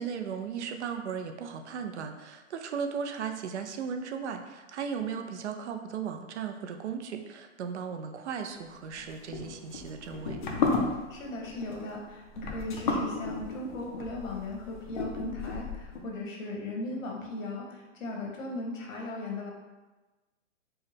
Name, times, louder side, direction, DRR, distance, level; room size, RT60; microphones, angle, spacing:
voice 1, 0.0-10.4, right 6 dB, 60° right, 6 dB, 0.5 m, -36 dB
sound 1, 9.0-16.0, left 4 dB, 40° left, 0.4 m, -33 dB
voice 2, 11.1-19.5, left 2 dB, 85° left, -1 dB, 1.2 m, -37 dB
4.5 x 2.1 x 3.2 m, 1.2 s
hypercardioid pair, 165°, 39 cm